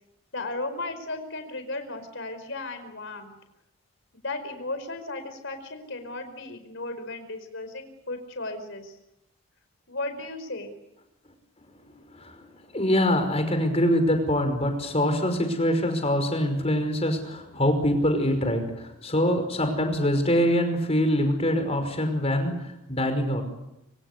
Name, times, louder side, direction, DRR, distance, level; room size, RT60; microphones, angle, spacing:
voice 1, 0.3-3.3 4.1-9.0 9.9-10.7, left 2 dB, 55° left, 8 dB, 5.0 m, -35 dB
voice 2, 12.1-23.4, equal, 30° left, 6 dB, 5.4 m, -24 dB
25.5 x 25.5 x 8.2 m, 0.89 s
head